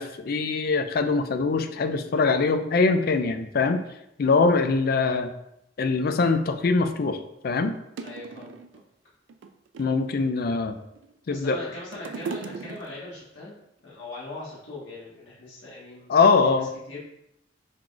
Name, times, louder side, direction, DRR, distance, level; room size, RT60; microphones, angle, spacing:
voice 1, 0.0-3.8 4.2-5.3 5.8-7.2 7.4-7.7 9.8-10.8 11.3-11.6 16.1-16.7, left 4 dB, 55° left, 8 dB, 0.4 m, -22 dB
sound 1, 6.8-6.9 7.5-7.6 8.0-8.8 9.3-10.1 10.7-11.3 11.6-13.2 14.0-14.1, right 5 dB, 75° right, 0.4 m, -38 dB
voice 2, 8.0-8.5 11.3-13.5 13.8-16.1 16.4-17.0, left 2 dB, 85° left, -7 dB, 1.4 m, -40 dB
4.5 x 2.4 x 3.9 m, 0.82 s
head